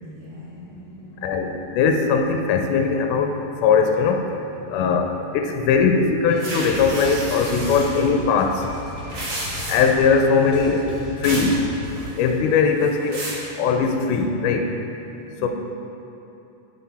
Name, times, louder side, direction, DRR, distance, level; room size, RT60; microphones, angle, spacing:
voice 1, 0.0-1.4 15.4-15.5, right 1 dB, 85° right, -8 dB, 2.9 m, -42 dB
voice 2, 1.2-3.3 3.6-4.2 4.7-8.7 9.7-10.9 11.2-11.6 12.2-13.2 13.6-14.7 15.4-15.5, left 5 dB, 80° left, 4 dB, 1.9 m, -20 dB
sound 1, 6.3-12.1, left 1 dB, 50° left, 1.1 m, -36 dB
sound 2, 6.4-8.0 9.0-10.0 11.2-11.5 11.9-12.4 12.8-13.4, right 1 dB, 50° right, 2.1 m, -31 dB
9.1 x 4.3 x 4.1 m, 2.9 s
omnidirectional pair, 3.9 m